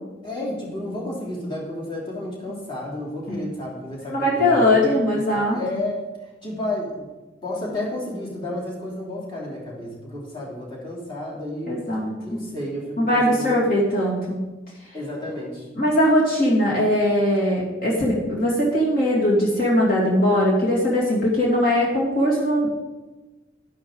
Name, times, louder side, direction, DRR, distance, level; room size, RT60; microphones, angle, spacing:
voice 1, 0.2-6.0 6.4-7.1 7.4-11.8 12.2-13.8 14.9-15.6, left 1 dB, 25° left, -4 dB, 3.3 m, -31 dB
voice 2, 4.1-5.6 11.7-12.4 13.0-14.4 15.8-22.7, left 1 dB, 50° left, -5 dB, 2.9 m, -20 dB
11.5 x 11.5 x 3.9 m, 1.1 s
head